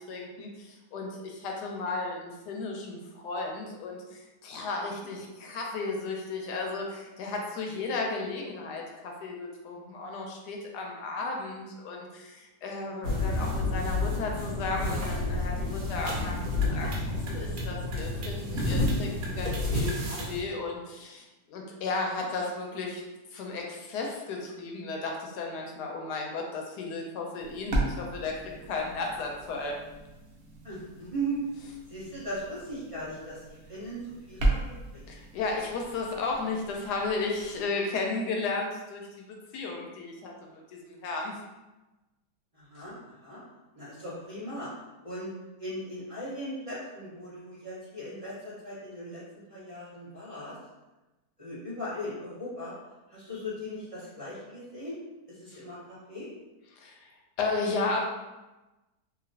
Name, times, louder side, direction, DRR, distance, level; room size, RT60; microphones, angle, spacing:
voice 1, 0.0-23.0 23.3-28.3 28.7-29.8 35.1-41.4 55.5-55.6 56.7-57.1 57.4-58.0, left 3 dB, 80° left, 1 dB, 1.1 m, -34 dB
sound 1, 13.0-20.4, left 2 dB, 65° right, 1.1 m, -30 dB
sound 2, 27.4-37.6, right 2 dB, 85° right, 0.5 m, -36 dB
voice 2, 30.6-31.4 31.9-34.0 34.3-35.0 42.5-43.4 43.7-44.7 45.0-45.3 45.6-49.2 49.5-50.6 51.4-52.7 53.1-55.0 55.3-55.8 56.1-56.3, equal, 25° right, -12 dB, 0.8 m, -38 dB
2.9 x 2.7 x 2.6 m, 1.1 s
omnidirectional pair, 1.8 m